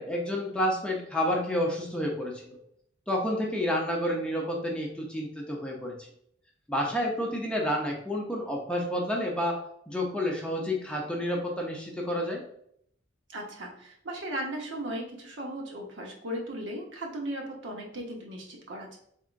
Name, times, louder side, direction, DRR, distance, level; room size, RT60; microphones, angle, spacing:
voice 1, 0.0-2.6 3.1-6.1 6.7-9.6 9.9-12.4, equal, 5° left, -1 dB, 0.6 m, -30 dB
voice 2, 13.3-19.0, right 1 dB, 70° right, 0 dB, 1.0 m, -37 dB
4.2 x 3.6 x 2.5 m, 0.70 s
head